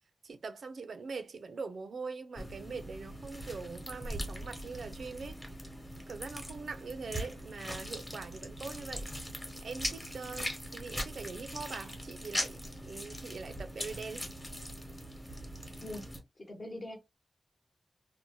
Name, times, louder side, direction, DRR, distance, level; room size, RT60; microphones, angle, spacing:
voice 1, 0.2-5.4 6.1-9.1 9.6-14.3, right 4 dB, 85° right, 0.4 m, -42 dB
sound 1, 2.4-16.2, equal, 15° left, 1.0 m, -41 dB
voice 2, 16.4-17.0, left 1 dB, 45° left, 0.9 m, -42 dB
2.6 x 2.1 x 2.9 m
wide cardioid pair, 105°, 0 cm